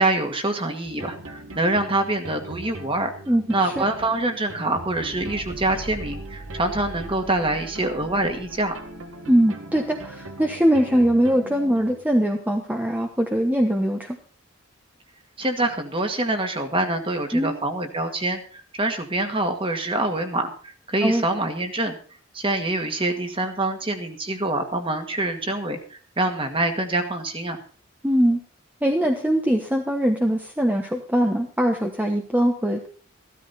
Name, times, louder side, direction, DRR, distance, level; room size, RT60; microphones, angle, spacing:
voice 1, 0.0-3.1 3.5-8.8 15.4-22.0 22.3-27.6, right 2 dB, 25° right, 5 dB, 2.0 m, -25 dB
sound 1, 0.8-12.0, right 1 dB, 80° right, 1.9 m, -39 dB
voice 2, 3.3-3.8 9.3-14.2 17.3-17.6 21.0-21.3 28.0-28.4 28.8-32.9, equal, 10° right, 2 dB, 1.1 m, -21 dB
15.0 x 13.0 x 4.3 m, 0.40 s
head